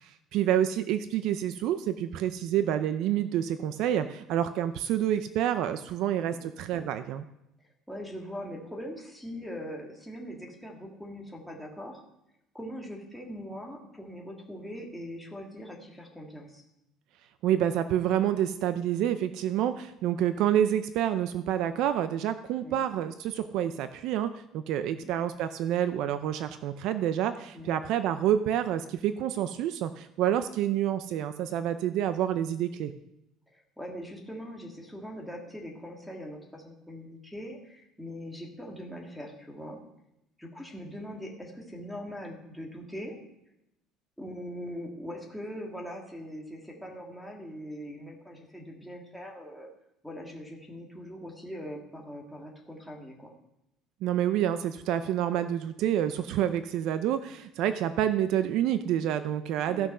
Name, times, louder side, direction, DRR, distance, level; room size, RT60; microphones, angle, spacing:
voice 1, 0.0-7.2 17.4-32.9 54.0-59.9, right 10 dB, 60° right, 11 dB, 0.5 m, -28 dB
voice 2, 7.9-12.0 12.5-16.6 22.6-22.8 24.9-25.1 27.5-27.7 33.5-39.8 40.4-43.2 44.2-49.7 50.0-53.3 59.7-59.9, equal, ahead, -1 dB, 1.9 m, -41 dB
14.5 x 6.3 x 5.4 m, 0.85 s
cardioid pair, 155°, 0 cm